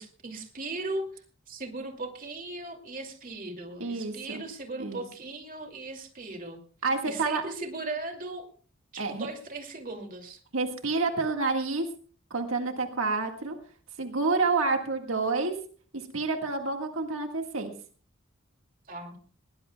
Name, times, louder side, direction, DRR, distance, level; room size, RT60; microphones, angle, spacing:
voice 1, 0.0-6.6 7.0-8.5 8.9-10.4 18.9-19.2, right 2 dB, 45° right, 3 dB, 2.6 m, -38 dB
voice 2, 3.8-4.4 4.8-5.0 6.8-7.4 9.0-9.3 10.5-11.9 12.3-13.5 14.0-15.5 16.1-17.7, right 3 dB, 80° right, 4 dB, 1.8 m, -28 dB
21.0 x 18.5 x 2.3 m, 0.42 s
head